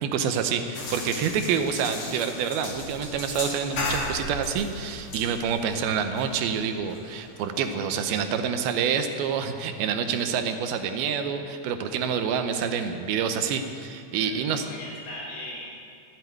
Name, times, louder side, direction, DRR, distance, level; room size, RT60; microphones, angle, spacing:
voice 1, 0.0-14.7, right 7 dB, 80° right, 7 dB, 2.5 m, -27 dB
sound 1, 0.7-7.7, left 2 dB, 45° left, 2.9 m, -36 dB
voice 2, 14.1-15.7, left 1 dB, 65° left, -7 dB, 4.7 m, -39 dB
13.5 x 7.9 x 9.2 m, 2.4 s
omnidirectional pair, 4.6 m